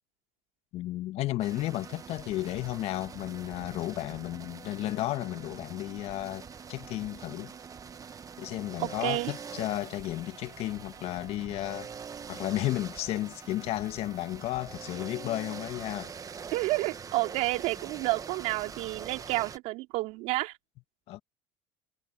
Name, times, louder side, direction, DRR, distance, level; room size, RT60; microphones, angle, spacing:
voice 1, 0.7-7.5 8.4-11.9 12.3-16.1 21.1-21.2, left 16 dB, 60° left, 1.6 m, -33 dB
sound 1, 1.4-19.6, right 6 dB, 30° right, 1.5 m, -44 dB
voice 2, 8.8-9.3 16.5-20.6, right 21 dB, 70° right, 3.7 m, -30 dB
supercardioid pair, 85°, 12 cm